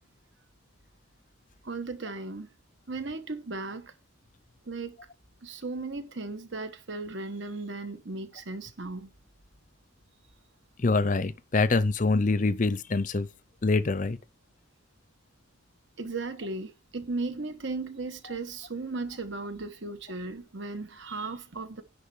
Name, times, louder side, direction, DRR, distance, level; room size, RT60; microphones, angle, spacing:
voice 1, 1.6-2.5 2.9-3.9 4.7-5.0 5.4-9.1 16.0-21.8, right 3 dB, 60° right, 1.2 m, -36 dB
voice 2, 10.8-13.3 13.6-14.2, left 3 dB, 40° left, 0.6 m, -25 dB
10.5 x 4.4 x 7.1 m
head